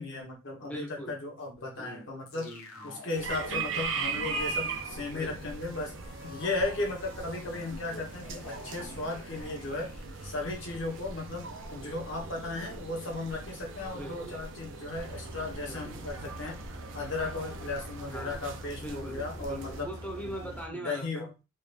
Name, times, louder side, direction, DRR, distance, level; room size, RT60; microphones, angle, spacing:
voice 1, 0.0-2.5 2.8-5.9 6.2-9.9 10.2-16.6 16.9-19.9 20.4-21.3, left 2 dB, 60° left, 0 dB, 1.2 m, -36 dB
voice 2, 0.6-1.2 1.8-2.1 2.3-3.0 5.1-5.5 13.9-14.4 15.6-16.1 18.1-18.4 18.8-21.4, right 1 dB, 5° left, 2 dB, 0.7 m, -42 dB
sound 1, 2.3-12.5, left 2 dB, 80° left, 0.8 m, -50 dB
sound 2, 3.1-19.8, right 4 dB, 60° right, 0.6 m, -40 dB
sound 3, 14.9-20.7, right 1 dB, 85° right, 1.0 m, -44 dB
3.3 x 2.5 x 3.4 m, 0.28 s
head